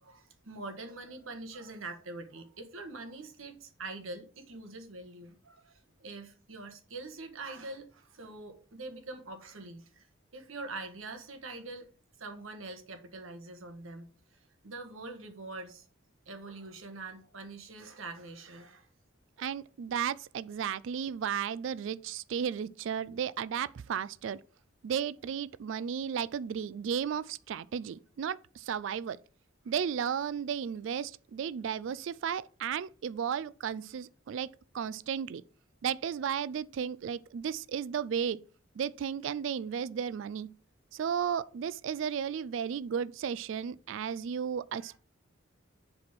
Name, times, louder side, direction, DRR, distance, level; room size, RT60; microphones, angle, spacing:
voice 1, 0.0-10.1 10.3-11.9 12.2-15.9 16.2-18.9 25.9-26.0 29.6-29.7 44.8-45.0, right 3 dB, 90° right, 1.6 m, -44 dB
voice 2, 19.4-24.4 24.8-29.2 29.7-35.4 35.8-38.4 38.8-40.5 40.9-45.0, right 8 dB, 70° right, 0.3 m, -34 dB
7.5 x 4.2 x 5.9 m
head